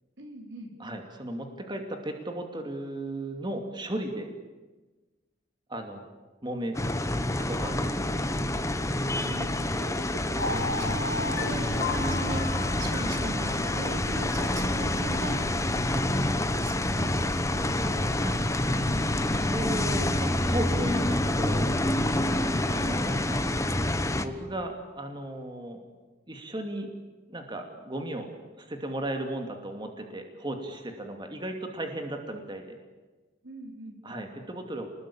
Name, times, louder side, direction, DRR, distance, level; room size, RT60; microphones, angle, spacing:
voice 1, 0.2-0.7 9.2-17.1 33.4-34.0, right 1 dB, 80° right, 3 dB, 4.7 m, -39 dB
voice 2, 0.8-4.3 5.7-6.0 6.4-6.8 7.4-8.1 17.6-18.5 18.8-21.7 22.7-23.4 23.9-25.8 26.3-26.9 27.3-28.3 28.6-32.6 34.0-34.9, right 1 dB, 25° right, 4 dB, 2.7 m, -36 dB
sound 1, 6.7-24.3, left 1 dB, 15° left, 1.2 m, -27 dB
sound 2, 10.4-22.6, left 1 dB, 55° left, 5.5 m, -36 dB
29.0 x 20.5 x 8.9 m, 1.2 s
head